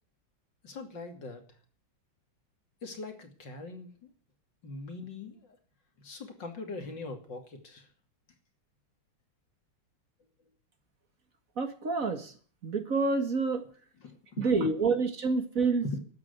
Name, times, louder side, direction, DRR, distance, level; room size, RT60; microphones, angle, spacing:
voice 1, 0.6-1.4 2.8-4.1 4.6-5.6 6.0-7.9 14.0-15.0 15.8-16.0, left 3 dB, 65° left, 6 dB, 3.3 m, -41 dB
voice 2, 11.6-12.3 12.6-13.6 14.4-15.9, right 4 dB, 45° right, 8 dB, 2.0 m, -28 dB
12.5 x 9.6 x 9.6 m, 0.43 s
omnidirectional pair, 2.1 m